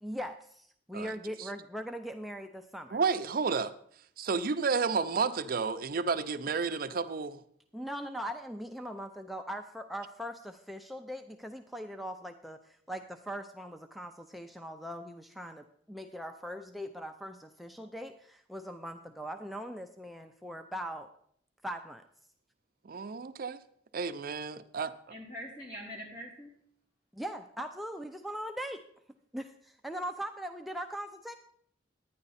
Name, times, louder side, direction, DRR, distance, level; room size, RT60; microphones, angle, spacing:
voice 1, 0.0-3.0 7.7-21.1 21.6-22.0 27.1-28.8 29.3-31.3, equal, ahead, 5 dB, 0.4 m, -40 dB
voice 2, 2.9-3.7 4.2-7.4 22.9-23.6 23.9-24.9, right 5 dB, 55° right, 11 dB, 0.5 m, -31 dB
voice 3, 25.1-26.5, equal, 55° left, -3 dB, 3.6 m, -43 dB
10.5 x 9.7 x 4.1 m, 0.64 s
head